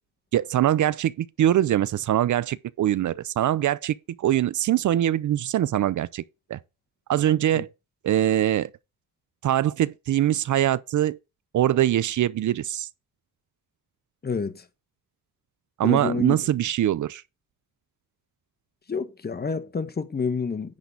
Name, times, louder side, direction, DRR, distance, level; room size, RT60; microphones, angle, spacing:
voice 1, 0.3-6.2 6.5-6.6 7.1-7.7 8.0-8.7 9.4-11.2 11.5-12.9 15.8-17.2, right 12 dB, 55° right, 0.5 m, -23 dB
voice 2, 14.2-14.6 15.8-16.4 18.9-20.8, left 5 dB, 25° left, 1.2 m, -28 dB
10.5 x 3.9 x 7.0 m
cardioid pair, 110°, 35 cm